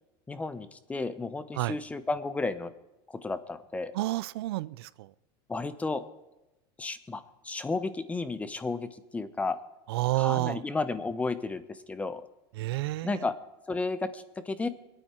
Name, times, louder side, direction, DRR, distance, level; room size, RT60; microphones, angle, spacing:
voice 1, 0.3-2.7 3.1-3.9 5.5-6.0 6.8-9.6 10.2-12.3 13.0-13.3 13.7-14.7, left 3 dB, 10° left, 14 dB, 0.7 m, -33 dB
voice 2, 3.9-5.1 9.9-10.6 12.6-13.3, right 18 dB, 85° right, 19 dB, 0.5 m, -30 dB
24.5 x 9.1 x 4.4 m, 0.98 s
supercardioid pair, 145°, 13 cm